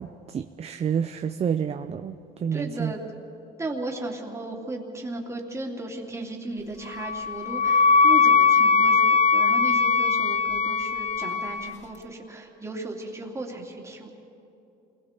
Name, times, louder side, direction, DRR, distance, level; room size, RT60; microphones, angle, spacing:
voice 1, 0.0-2.1 2.4-2.9, right 7 dB, 40° right, 9 dB, 0.6 m, -29 dB
voice 2, 2.5-3.0 3.6-14.1, right 2 dB, 15° right, 0 dB, 2.9 m, -35 dB
Wind instrument woodwind instrument, 7.0-11.7, left 5 dB, 45° left, 0.8 m, -20 dB
27.5 x 21.0 x 4.5 m, 2.9 s
cardioid pair, 110°, 17 cm